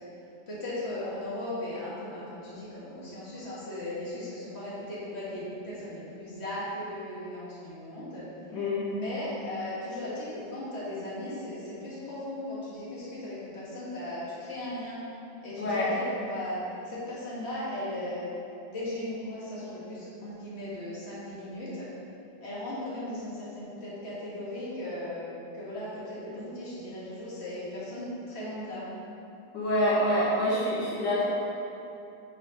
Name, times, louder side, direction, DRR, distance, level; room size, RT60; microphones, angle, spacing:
voice 1, 0.5-8.3 8.8-15.0 15.4-16.6 16.9-18.3 18.7-21.9 22.4-28.9, left 1 dB, 35° left, -9 dB, 2.1 m, -37 dB
voice 2, 8.5-8.8 15.6-15.9 29.5-31.3, left 1 dB, 75° left, -7 dB, 1.9 m, -26 dB
5.7 x 5.1 x 5.2 m, 2.8 s
omnidirectional pair, 1.9 m